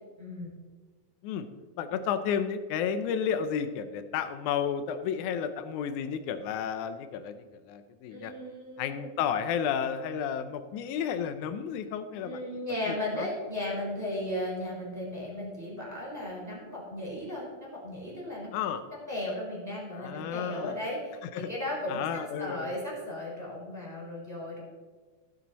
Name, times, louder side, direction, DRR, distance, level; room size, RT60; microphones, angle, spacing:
voice 1, 0.2-0.5 8.1-9.1 12.1-18.6 19.1-24.6, left 1 dB, 5° right, -4 dB, 3.8 m, -36 dB
voice 2, 1.8-8.3 8.8-12.4 12.9-13.3 18.5-18.8 19.9-20.8 21.3-21.5 21.9-22.7, left 8 dB, 80° left, 10 dB, 1.8 m, -32 dB
16.0 x 7.2 x 4.1 m, 1.4 s
omnidirectional pair, 4.2 m